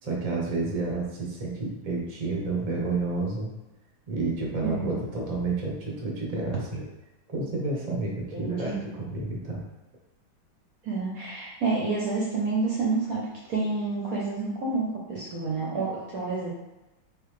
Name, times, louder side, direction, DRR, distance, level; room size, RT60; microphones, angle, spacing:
voice 1, 0.0-3.5 4.1-6.8 7.3-8.7 9.0-9.6, right 3 dB, 40° right, -2 dB, 0.5 m, -30 dB
voice 2, 4.6-5.0 8.3-9.0 10.8-16.5, right 3 dB, 65° right, -3 dB, 0.9 m, -29 dB
3.9 x 3.4 x 3.2 m, 1.0 s
omnidirectional pair, 2.2 m